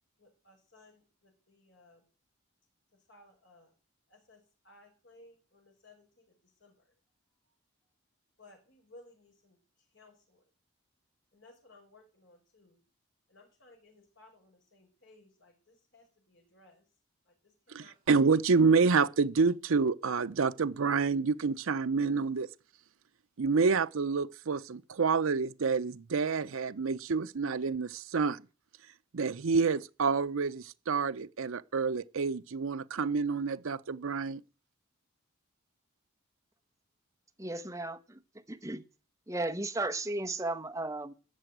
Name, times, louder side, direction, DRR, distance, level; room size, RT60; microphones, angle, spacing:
voice 1, 0.2-2.1 2.9-3.7 4.1-6.9 8.4-10.5 11.3-12.8 13.3-16.8 17.3-19.0 20.4-20.7, left 2 dB, 60° left, 5.7 m, -60 dB
voice 2, 17.7-22.5 23.4-28.4 29.1-34.4, right 4 dB, 75° right, 0.6 m, -28 dB
voice 3, 37.4-38.2 38.5-38.8 39.3-41.1, right 2 dB, 15° right, 0.9 m, -35 dB
14.0 x 6.8 x 9.1 m
head